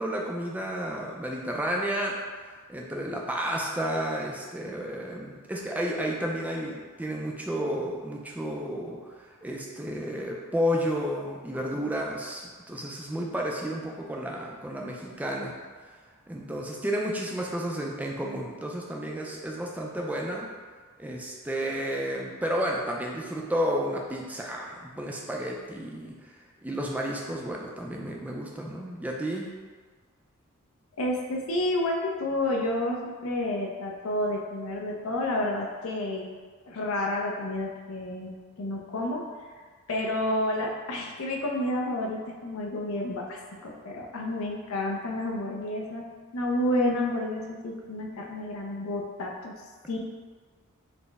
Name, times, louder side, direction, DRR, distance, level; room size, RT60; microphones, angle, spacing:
voice 1, 0.0-2.2 2.7-9.0 9.4-15.5 16.3-20.5 21.0-26.3 26.6-29.5, equal, 5° right, -1 dB, 0.3 m, -31 dB
voice 2, 31.0-36.3 36.7-39.3 39.9-46.0 46.3-49.6 49.9-50.0, left 1 dB, 65° left, 0 dB, 0.5 m, -30 dB
4.1 x 2.0 x 3.4 m, 1.5 s
head